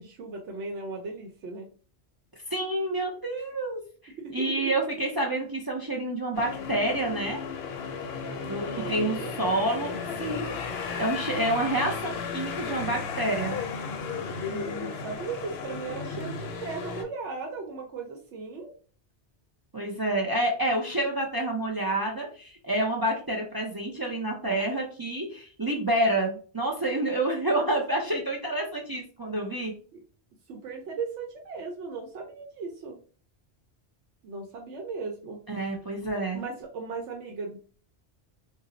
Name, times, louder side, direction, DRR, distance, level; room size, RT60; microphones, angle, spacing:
voice 1, 0.0-1.6 4.2-4.7 8.7-9.3 14.5-18.7 29.9-30.0 30.5-33.0 34.2-35.4 36.1-37.6, right 4 dB, 85° right, 2 dB, 1.0 m, -37 dB
voice 2, 2.5-3.8 4.3-7.4 8.5-9.9 10.2-10.5 11.0-13.5 19.7-29.7 35.5-36.4, right 1 dB, 35° right, -1 dB, 0.3 m, -28 dB
sound 1, 6.3-17.0, left 5 dB, 70° left, 0.8 m, -34 dB
2.6 x 2.0 x 3.8 m, 0.40 s
omnidirectional pair, 1.2 m